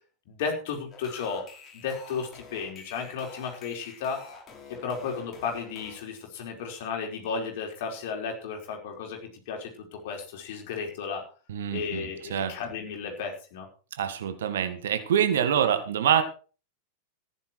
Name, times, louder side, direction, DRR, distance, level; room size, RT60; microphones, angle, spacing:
voice 1, 0.3-1.4 1.7-4.3 4.7-11.2 11.7-13.7, left 5 dB, 50° left, 2 dB, 4.8 m, -34 dB
sound 1, 0.9-6.0, left 5 dB, 25° left, 5.2 m, -47 dB
voice 2, 11.5-12.5 14.0-16.2, right 9 dB, 60° right, 10 dB, 1.8 m, -25 dB
15.0 x 10.5 x 4.6 m, 0.37 s
figure-of-eight pair, 90°, 0 cm